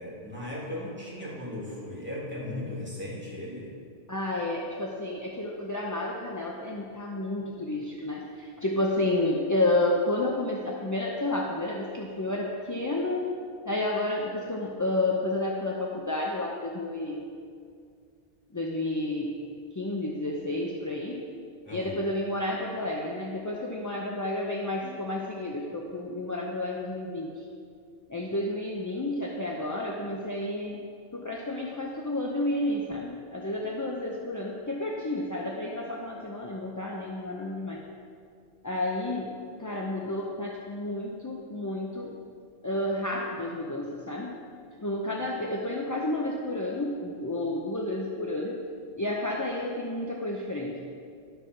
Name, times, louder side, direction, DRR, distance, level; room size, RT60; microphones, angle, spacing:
voice 1, 0.0-3.7 21.6-21.9 24.8-25.0, left 1 dB, 10° right, -8 dB, 2.6 m, -37 dB
voice 2, 4.1-13.3 13.6-17.2 18.5-19.4 19.7-21.2 21.7-27.4 28.1-30.8 31.1-37.8 38.6-42.1 42.6-44.4 44.8-48.6 48.9-51.0, left 1 dB, 20° left, -2 dB, 0.5 m, -31 dB
11.0 x 4.8 x 6.0 m, 2.2 s
omnidirectional pair, 1.2 m